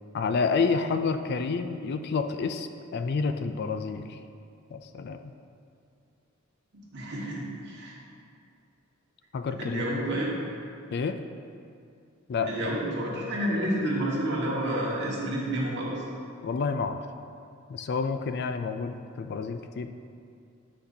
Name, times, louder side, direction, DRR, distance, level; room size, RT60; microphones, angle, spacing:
voice 1, 0.1-4.2 4.7-5.3 9.3-9.9 10.9-11.2 12.3-12.7 16.4-17.0 17.7-19.9, left 4 dB, 55° left, 8 dB, 0.3 m, -29 dB
voice 2, 6.9-8.0 9.6-10.3 12.4-16.0, right 1 dB, 60° right, -5 dB, 1.6 m, -29 dB
10.0 x 5.8 x 2.7 m, 2.4 s
head